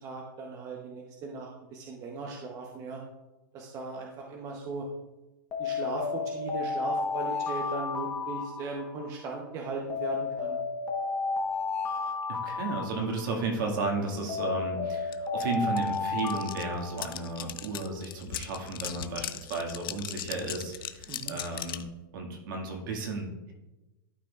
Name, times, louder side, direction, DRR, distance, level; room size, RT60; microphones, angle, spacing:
voice 1, 0.0-3.0 3.5-4.9 5.6-10.6 21.1-21.4, right 3 dB, 30° right, 0 dB, 0.8 m, -38 dB
Alarm, 5.5-9.2 9.9-13.6 14.3-17.5, left 4 dB, 20° left, 1.0 m, -32 dB
voice 2, 12.3-21.8 22.1-23.5, right 3 dB, 65° right, 1 dB, 1.9 m, -33 dB
sound 1, 15.1-15.2 15.4-21.9, left 12 dB, 75° left, 0.5 m, -39 dB
12.0 x 4.9 x 2.4 m, 1.0 s
supercardioid pair, 145°, 12 cm